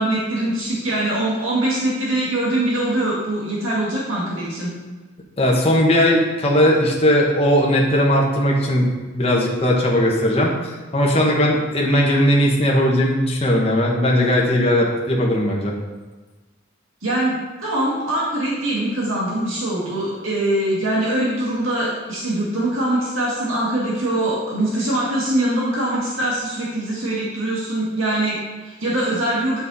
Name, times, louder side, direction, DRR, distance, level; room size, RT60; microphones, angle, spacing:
voice 1, 0.0-4.7 17.0-29.6, right 1 dB, 70° right, -6 dB, 2.1 m, -23 dB
voice 2, 5.4-15.7, equal, 30° left, -2 dB, 1.3 m, -18 dB
8.3 x 7.1 x 4.2 m, 1.3 s
head